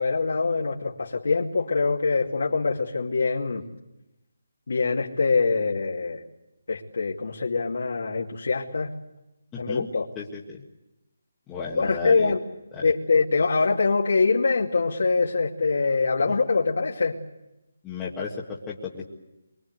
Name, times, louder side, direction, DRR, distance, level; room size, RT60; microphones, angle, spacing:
voice 1, 0.0-3.6 4.7-6.2 6.7-8.9 9.6-10.1 11.7-12.4 12.8-17.2, left 4 dB, 65° left, -3 dB, 2.6 m, -24 dB
voice 2, 9.5-9.9 10.1-10.6 11.5-12.3 12.7-12.9 17.8-19.0, left 5 dB, 10° left, -6 dB, 1.7 m, -34 dB
25.0 x 24.0 x 8.2 m, 0.95 s
hypercardioid pair, 175°, 0 cm